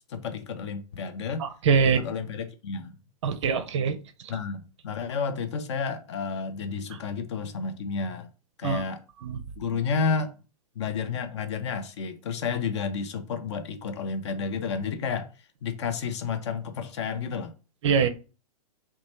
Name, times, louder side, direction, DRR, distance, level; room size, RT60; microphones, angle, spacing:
voice 1, 0.1-1.4 1.8-3.0 4.3-8.3 8.6-9.0 9.6-10.3 10.8-15.3 15.6-17.5, left 5 dB, 50° left, 0.5 m, -31 dB
voice 2, 1.4-2.0 3.2-4.0 8.6-8.8 9.2-9.4 17.8-18.1, right 6 dB, 50° right, 0.4 m, -23 dB
3.0 x 2.2 x 2.9 m
figure-of-eight pair, 105°, 19 cm